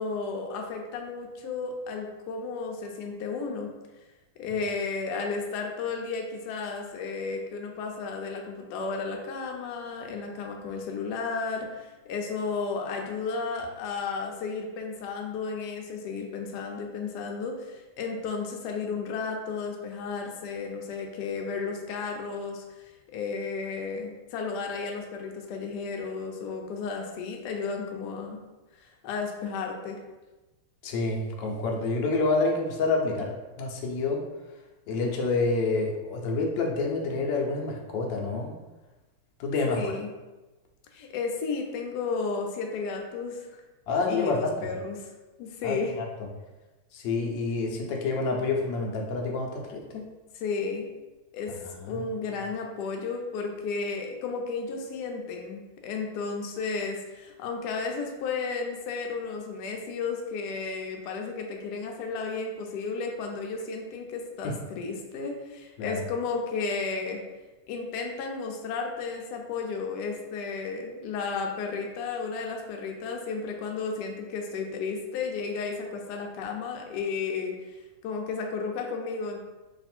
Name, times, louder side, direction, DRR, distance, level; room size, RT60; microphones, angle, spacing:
voice 1, 0.0-3.7 4.4-28.4 28.8-30.0 39.6-40.1 40.9-43.5 44.1-45.1 45.4-45.9 50.4-50.9 51.3-51.5 51.9-67.2 67.7-77.8 78.0-79.4, left 4 dB, 90° left, 2 dB, 0.9 m, -33 dB
voice 2, 30.8-34.2 34.9-38.5 39.4-40.0 43.9-44.7 45.6-46.0 46.9-50.1 51.5-52.1 64.4-64.6 65.8-66.0, left 3 dB, 70° left, 0 dB, 1.2 m, -28 dB
3.3 x 2.4 x 4.2 m, 1.1 s
omnidirectional pair, 2.3 m